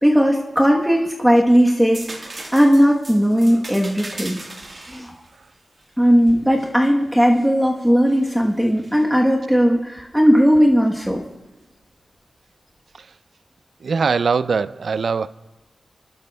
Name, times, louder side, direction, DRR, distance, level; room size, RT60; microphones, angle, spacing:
voice 1, 0.0-2.1 2.5-4.4 4.9-5.1 6.0-11.2, equal, 5° right, 1.1 m, -17 dB
sound 1, 1.9-7.5 8.1-9.0 11.1-11.3, right 2 dB, 40° right, 1.5 m, -39 dB
voice 2, 13.8-15.3, right 5 dB, 65° right, 0.3 m, -21 dB
30.0 x 12.0 x 2.2 m
wide cardioid pair, 115°, 0 cm